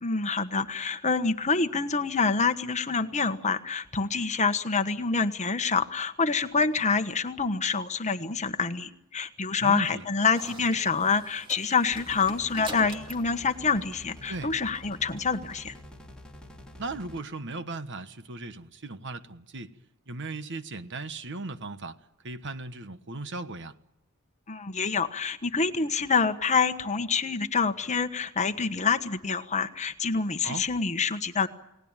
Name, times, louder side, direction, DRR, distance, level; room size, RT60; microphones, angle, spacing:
voice 1, 0.0-15.7 24.5-31.5, left 5 dB, 30° left, 1.3 m, -27 dB
voice 2, 9.6-10.0 14.3-14.5 16.8-19.7 20.1-22.0 22.2-23.7 30.4-30.6, right 3 dB, 55° right, 1.3 m, -37 dB
sound 1, 10.3-14.6, right 1 dB, 25° right, 2.7 m, -45 dB
sound 2, 11.9-17.2, left 1 dB, 5° left, 3.4 m, -47 dB
30.0 x 18.5 x 9.0 m
head